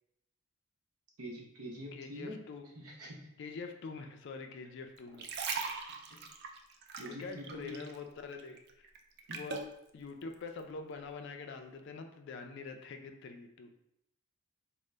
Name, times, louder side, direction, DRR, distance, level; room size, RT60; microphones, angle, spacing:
voice 1, 1.2-2.4 2.7-3.3 6.9-7.8 9.3-9.4, equal, 85° right, -1 dB, 0.8 m, -45 dB
voice 2, 1.9-2.7 3.4-5.3 5.7-5.9 7.0-8.9 9.3-9.7 9.9-13.7, left 4 dB, 55° left, 6 dB, 0.3 m, -45 dB
sound 1, 5.0-8.0 8.3-9.7 10.3-10.5, right 5 dB, 50° right, 0.3 m, -40 dB
3.7 x 2.0 x 3.2 m, 0.81 s
head